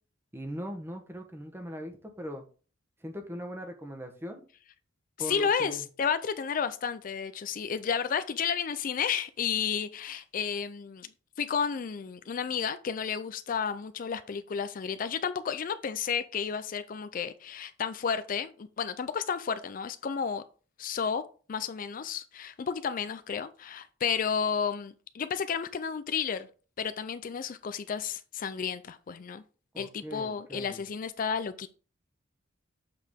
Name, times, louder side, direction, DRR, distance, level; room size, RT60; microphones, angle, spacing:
voice 1, 0.3-2.4 3.0-4.4 5.2-5.8 29.7-30.8, equal, 10° right, 1.0 m, -40 dB
voice 2, 5.2-11.1 11.4-20.4 20.8-21.2 21.5-26.5 26.8-29.4 29.8-31.7, left 6 dB, 45° left, 0.4 m, -32 dB
7.7 x 4.6 x 3.6 m
head